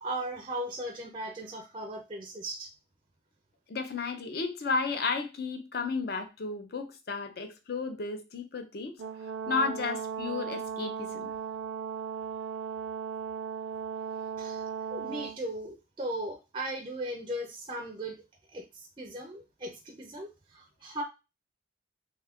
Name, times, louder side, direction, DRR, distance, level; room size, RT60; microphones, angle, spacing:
voice 1, 0.0-2.7 14.4-18.2 18.5-21.0, right 1 dB, 25° right, 2 dB, 0.4 m, -38 dB
voice 2, 3.7-8.9 9.5-11.3, left 4 dB, 50° left, 6 dB, 0.5 m, -33 dB
Brass instrument, 9.0-15.4, right 7 dB, 90° right, 0.4 m, -37 dB
2.7 x 2.3 x 3.4 m, 0.27 s
head